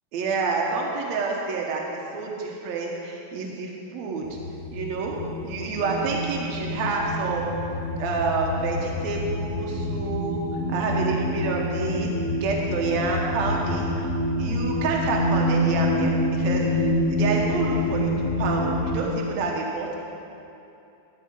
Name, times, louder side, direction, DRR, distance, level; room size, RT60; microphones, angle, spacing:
voice 1, 0.1-4.2 4.7-5.1 5.4-7.5 8.0-10.4 10.7-12.1 12.3-13.9 14.4-19.9, right 4 dB, 85° right, -1 dB, 1.5 m, -28 dB
sound 1, 4.2-19.1, left 1 dB, 90° left, 2.8 m, -27 dB
12.0 x 4.8 x 8.7 m, 2.8 s
omnidirectional pair, 4.6 m